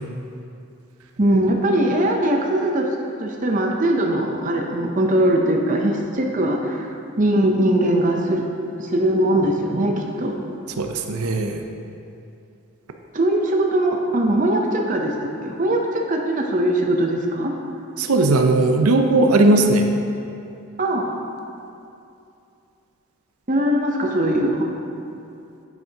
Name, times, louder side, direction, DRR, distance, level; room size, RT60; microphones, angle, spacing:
voice 1, 1.2-2.9 3.2-6.9 7.2-8.5 8.8-10.3 13.1-15.1 15.4-17.5 20.8-21.1 23.5-24.7, right 1 dB, 35° right, 1 dB, 0.6 m, -20 dB
voice 2, 10.8-11.6 18.0-19.9, right 2 dB, 90° right, 4 dB, 0.6 m, -17 dB
9.2 x 8.0 x 2.9 m, 2.6 s
head